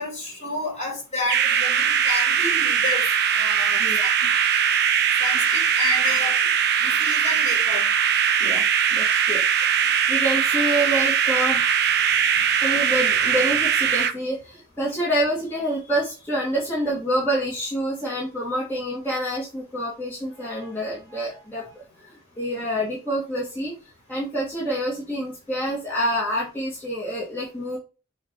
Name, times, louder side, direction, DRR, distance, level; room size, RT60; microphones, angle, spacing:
voice 1, 0.0-3.1 3.3-4.1 5.2-6.5 6.8-7.9, left 1 dB, 30° left, 3.1 m, -30 dB
sound 1, 1.3-14.1, right 8 dB, 50° right, 0.8 m, -21 dB
voice 2, 8.9-9.7 10.1-11.6 12.6-23.7 24.1-27.8, equal, 10° left, 2.0 m, -27 dB
7.0 x 2.9 x 5.4 m
head